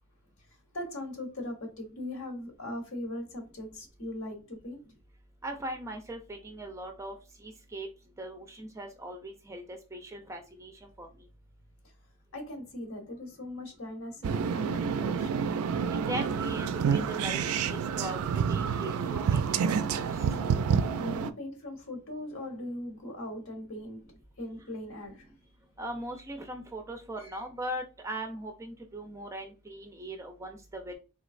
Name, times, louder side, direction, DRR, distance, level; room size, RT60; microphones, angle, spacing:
voice 1, 0.5-4.8 12.3-15.5 20.9-24.0 24.4-25.3 27.2-27.4, left 1 dB, 65° left, 1.1 m, -39 dB
voice 2, 5.4-7.1 7.4-7.9 8.2-10.7 11.0-11.1 16.1-18.2 18.5-20.0 25.8-30.9, right 1 dB, 15° right, 0.4 m, -39 dB
sound 1, 14.2-21.3, right 6 dB, 75° right, 0.3 m, -28 dB
3.8 x 3.1 x 2.4 m
head